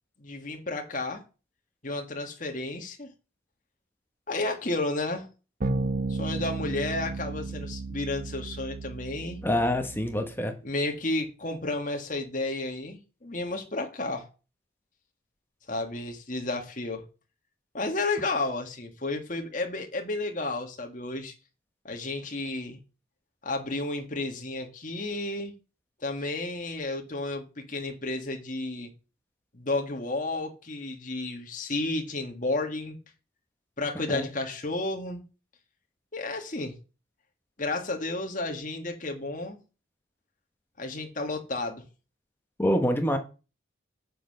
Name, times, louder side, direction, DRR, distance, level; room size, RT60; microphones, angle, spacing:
voice 1, 0.2-1.2 1.8-3.1 4.3-5.3 6.1-9.4 10.6-14.3 15.7-17.1 17.7-21.3 21.8-22.8 23.4-25.5 26.0-28.9 29.5-33.0 33.8-35.2 36.1-36.8 37.6-39.6 40.8-41.8, left 2 dB, 40° left, 1.8 m, -32 dB
sound 1, 5.6-10.4, right 3 dB, 45° right, 0.9 m, -33 dB
voice 2, 9.4-10.5 34.1-34.2 42.6-43.2, equal, 10° left, 1.1 m, -26 dB
7.5 x 6.7 x 6.6 m
head